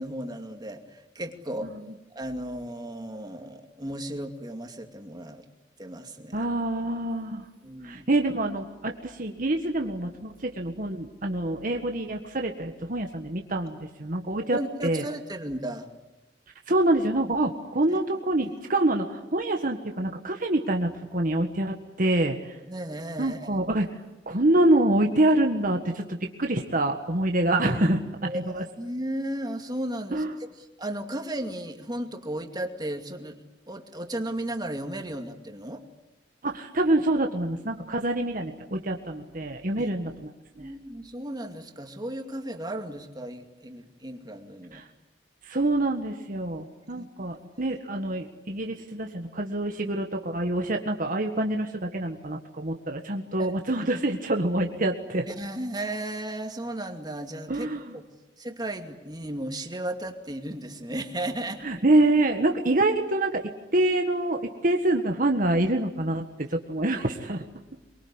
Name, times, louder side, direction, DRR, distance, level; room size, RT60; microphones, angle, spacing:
voice 1, 0.0-1.7 2.1-5.4 5.8-6.4 7.6-8.0 14.5-15.9 17.9-18.0 22.7-23.5 28.2-30.2 30.8-33.4 33.7-35.8 39.7-39.8 40.6-44.8 46.9-47.1 53.4-53.5 55.3-58.0 58.4-61.6, right 1 dB, 25° right, 5 dB, 2.4 m, -35 dB
voice 2, 6.3-7.5 7.8-15.0 16.7-22.6 23.2-23.9 24.3-28.6 30.1-30.3 36.4-40.3 40.6-40.7 44.7-44.9 45.4-55.3 57.5-57.8 61.6-63.4 63.7-67.5, right 1 dB, 50° right, 3 dB, 1.7 m, -26 dB
24.0 x 23.0 x 9.8 m, 1.0 s
head